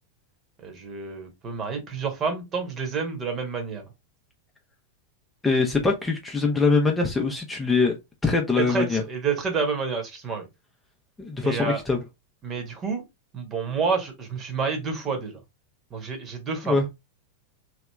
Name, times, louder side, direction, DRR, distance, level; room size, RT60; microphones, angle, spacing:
voice 1, 0.6-3.9 8.6-10.5 11.4-11.8 12.4-13.0 13.3-15.4 15.9-16.8, right 5 dB, 25° right, 1.5 m, -29 dB
voice 2, 5.4-7.9 8.2-9.0 11.2-12.0 16.6-16.9, left 4 dB, 10° left, 0.9 m, -23 dB
3.5 x 3.1 x 3.4 m
figure-of-eight pair, 90°, 0 cm